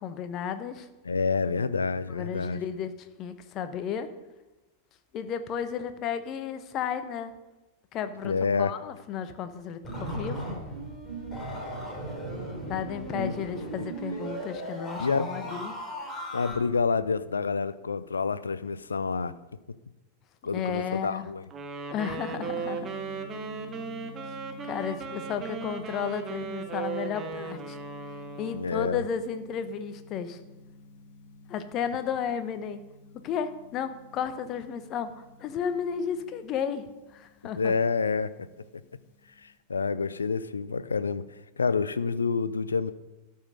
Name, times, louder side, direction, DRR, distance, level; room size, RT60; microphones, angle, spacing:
voice 1, 0.0-0.9 2.1-4.1 5.1-7.3 7.9-10.6 12.7-15.8 20.5-21.3 21.9-22.9 24.6-27.8 28.4-30.4 31.5-32.8 33.2-37.7, left 7 dB, 35° left, 11 dB, 0.9 m, -33 dB
voice 2, 1.0-2.6 8.2-8.7 13.2-13.3 15.0-15.4 16.3-19.3 20.4-21.4 28.5-29.0 37.6-38.6 39.4-41.2 41.6-42.9, left 5 dB, 75° left, 16 dB, 0.5 m, -28 dB
sound 1, 9.8-16.5, right 1 dB, 10° left, 4.6 m, -36 dB
Wind instrument woodwind instrument, 21.5-28.7, right 5 dB, 25° right, 1.3 m, -37 dB
Gong, 22.3-39.6, left 3 dB, 55° left, 1.5 m, -49 dB
13.0 x 5.6 x 6.5 m, 1.1 s
figure-of-eight pair, 90°, 0 cm